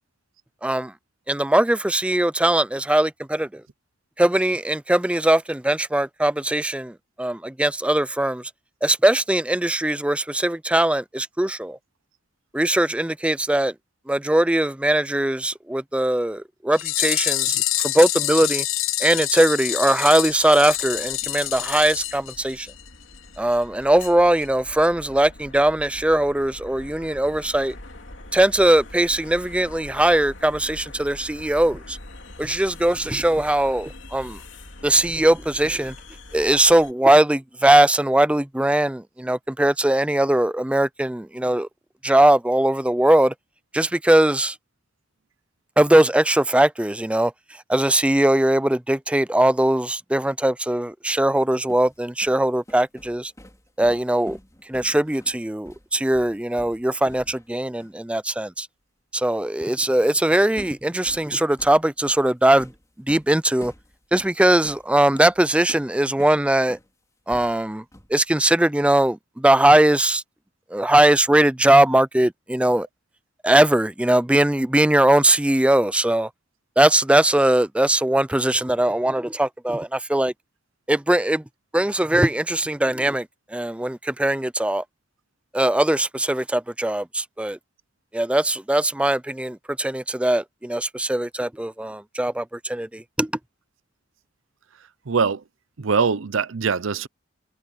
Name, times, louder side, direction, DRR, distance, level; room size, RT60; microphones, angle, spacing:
voice 1, 0.6-0.9 1.3-3.6 4.2-8.4 8.8-11.8 12.5-13.7 14.1-18.6 19.0-22.7 23.4-27.7 28.3-32.0 32.4-34.4 34.8-35.9 36.3-41.7 42.0-43.3 43.7-44.6 45.8-47.3 47.7-53.3 53.8-54.4 54.7-58.7 59.1-62.7 63.1-63.7 64.1-66.8 67.3-67.8 68.1-70.2 70.7-72.9 73.4-76.3 76.8-80.3 80.9-81.4 81.7-83.3 83.5-84.8 85.5-87.6 88.1-93.3, right 1 dB, 5° right, 0.5 m, -20 dB
sound 1, 16.7-22.9 23.2-23.3 23.5-23.6 24.0-24.1 24.4-24.5, left 15 dB, 85° left, 0.7 m, -26 dB
sound 2, 20.2-36.9, left 1 dB, 65° left, 3.2 m, -43 dB
sound 3, 51.3-57.5 57.8-58.0 60.0-60.2 60.6-66.9 67.3-68.2, equal, 15° left, 4.6 m, -46 dB
voice 2, 95.1-95.4 95.8-97.1, right 5 dB, 80° right, 0.7 m, -22 dB
head